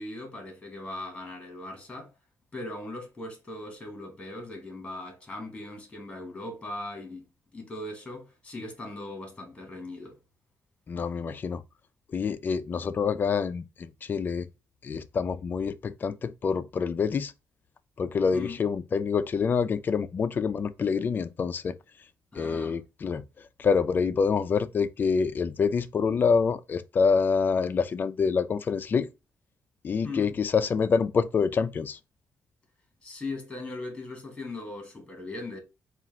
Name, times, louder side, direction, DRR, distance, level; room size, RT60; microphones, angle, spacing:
voice 1, 0.0-2.1 2.5-7.2 7.5-10.2 18.3-18.6 22.3-22.8 30.0-30.4 33.0-35.6, left 2 dB, 10° left, 1.6 m, -39 dB
voice 2, 10.9-11.6 12.1-14.5 14.8-17.3 18.0-21.8 22.4-23.2 23.6-29.1 29.8-32.0, left 5 dB, 35° left, 0.4 m, -26 dB
4.3 x 2.5 x 3.6 m
wide cardioid pair, 165°, 6 cm